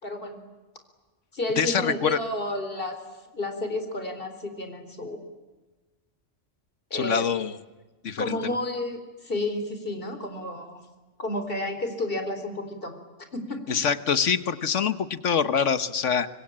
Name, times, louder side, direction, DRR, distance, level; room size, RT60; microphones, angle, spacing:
voice 1, 0.0-0.4 1.3-3.0 3.3-5.2 6.9-7.3 8.2-10.8 11.2-13.0 13.3-13.6, left 1 dB, 45° left, 7 dB, 4.4 m, -31 dB
voice 2, 1.6-2.2 6.9-7.6 8.0-8.6 13.7-16.3, left 7 dB, 75° left, 13 dB, 1.5 m, -25 dB
25.5 x 25.0 x 8.7 m, 1.2 s
omnidirectional pair, 1.3 m